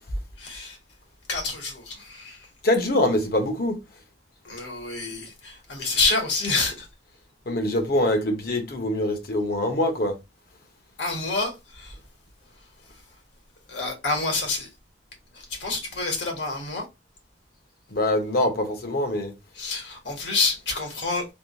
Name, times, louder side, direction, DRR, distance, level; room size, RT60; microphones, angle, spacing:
voice 1, 0.4-0.8 1.3-2.5 4.4-6.9 11.0-12.0 12.5-13.1 13.7-14.7 15.3-16.9 19.5-21.3, left 3 dB, 70° left, 1.4 m, -28 dB
voice 2, 2.6-3.8 7.5-10.2 17.9-19.3, left 1 dB, 50° left, 0.9 m, -24 dB
3.6 x 2.6 x 2.5 m
head